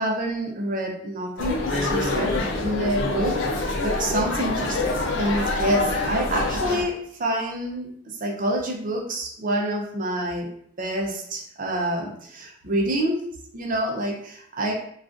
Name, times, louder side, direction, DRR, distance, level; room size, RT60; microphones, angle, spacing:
voice 1, 0.0-2.3 2.6-7.9 8.2-10.5 10.8-13.2 13.5-14.7, right 1 dB, 45° right, 0 dB, 0.6 m, -27 dB
sound 1, 1.4-6.8, left 2 dB, 85° left, 0.5 m, -26 dB
3.5 x 2.4 x 2.5 m, 0.67 s
head